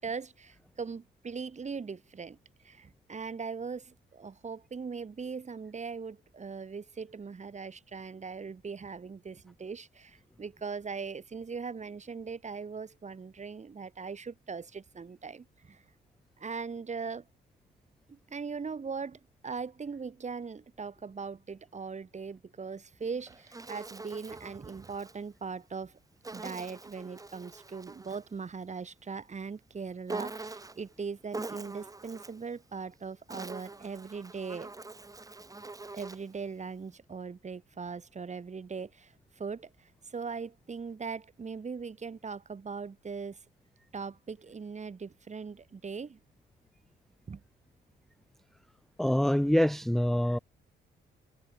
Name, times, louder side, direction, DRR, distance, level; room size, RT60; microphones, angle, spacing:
voice 1, 0.0-2.4 2.6-15.8 16.4-17.3 18.1-26.0 26.3-34.7 35.9-43.4 43.9-46.2 47.3-47.4, right 5 dB, 35° right, 5.8 m, -40 dB
Insect, 23.0-25.2 26.2-28.3 30.1-30.9 31.3-32.5 33.1-36.3, right 3 dB, 15° right, 1.8 m, -43 dB
voice 2, 49.0-50.4, equal, ahead, 0.7 m, -25 dB
cardioid pair, 90°, 20 cm